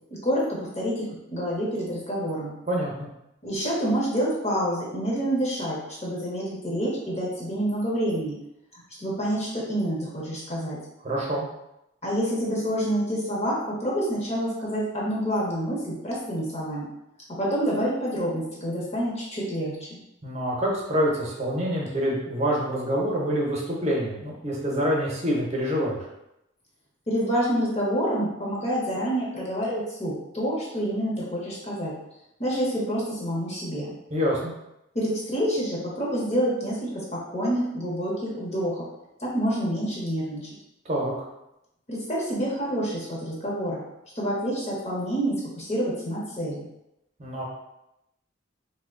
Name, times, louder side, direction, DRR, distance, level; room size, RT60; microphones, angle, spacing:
voice 1, 0.1-2.5 3.4-8.4 8.7-10.8 12.0-16.9 17.3-20.0 27.1-31.9 32.4-33.9 34.9-38.8 39.2-40.5 41.9-43.8 44.1-46.7, equal, 35° left, -5 dB, 0.9 m, -28 dB
voice 2, 2.7-3.1 11.0-11.5 20.2-26.0 34.1-34.5 40.8-41.1 47.2-47.4, equal, 35° right, -3 dB, 0.8 m, -26 dB
3.0 x 2.2 x 3.7 m, 0.87 s
head